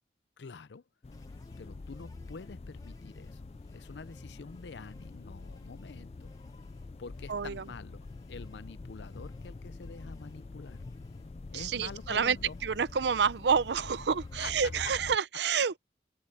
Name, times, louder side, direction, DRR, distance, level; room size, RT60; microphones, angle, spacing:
voice 1, 0.4-0.8 1.6-3.5 3.7-6.3 7.0-10.8 11.5-12.6 14.4-14.9, left 4 dB, 85° left, 0.6 m, -46 dB
sound 1, 1.0-15.2, left 3 dB, 35° left, 0.4 m, -46 dB
sound 2, 1.1-14.7, left 1 dB, 20° left, 1.3 m, -63 dB
voice 2, 7.3-7.6 11.5-12.4 12.6-15.8, right 6 dB, 80° right, 0.5 m, -28 dB
open air
head